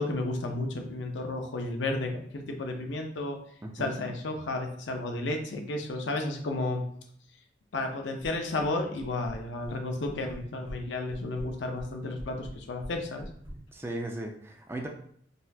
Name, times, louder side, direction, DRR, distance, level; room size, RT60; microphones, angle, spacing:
voice 1, 0.0-3.4 3.8-6.8 7.7-13.3, left 2 dB, 80° left, 3 dB, 0.6 m, -32 dB
sound 1, 8.2-8.7 9.0-9.7 10.0-10.8 11.1-13.6, equal, 30° right, 1.0 m, -43 dB
voice 2, 13.7-14.9, right 1 dB, 15° right, 2 dB, 0.3 m, -36 dB
4.0 x 2.7 x 2.3 m, 0.62 s
head